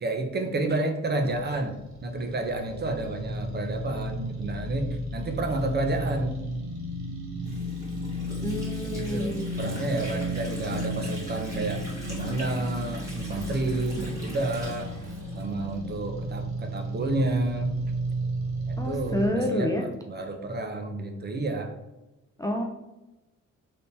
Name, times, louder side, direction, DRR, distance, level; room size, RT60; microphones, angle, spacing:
voice 1, 0.0-1.7 2.0-6.4 8.8-11.8 12.1-14.9 15.3-17.7 18.7-21.7, right 2 dB, 35° right, 4 dB, 0.6 m, -30 dB
sound 1, 1.2-19.3, right 1 dB, 65° right, 0.9 m, -33 dB
Water / Sink (filling or washing), 7.4-16.0, equal, 10° right, 1.5 m, -44 dB
voice 2, 8.4-9.6 18.8-19.9 22.4-22.6, equal, 10° left, 1 dB, 0.3 m, -28 dB
3.3 x 2.8 x 2.7 m, 1.0 s
cardioid pair, 75°, 31 cm